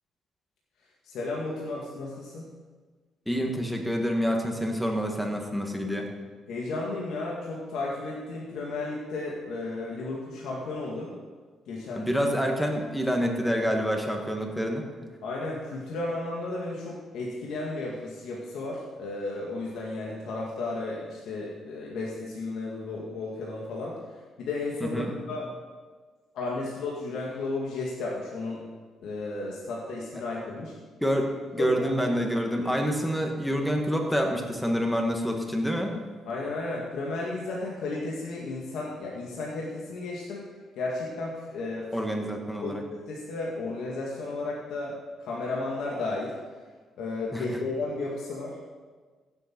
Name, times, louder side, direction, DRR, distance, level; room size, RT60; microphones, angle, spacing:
voice 1, 1.0-2.5 6.5-11.1 11.7-12.1 15.2-24.0 24.4-25.5 26.3-28.6 29.0-30.7 31.5-32.1 32.5-32.7 36.3-40.4 40.8-41.9 42.2-42.3 42.6-46.3 47.0-48.6, left 2 dB, 80° left, -3 dB, 1.9 m, -33 dB
voice 2, 3.3-6.1 12.0-14.8 24.8-25.1 31.0-31.2 31.5-36.0 41.9-42.8 47.3-47.4, equal, 5° left, 2 dB, 1.9 m, -27 dB
16.0 x 8.0 x 4.6 m, 1.4 s
cardioid pair, 90°, 0 cm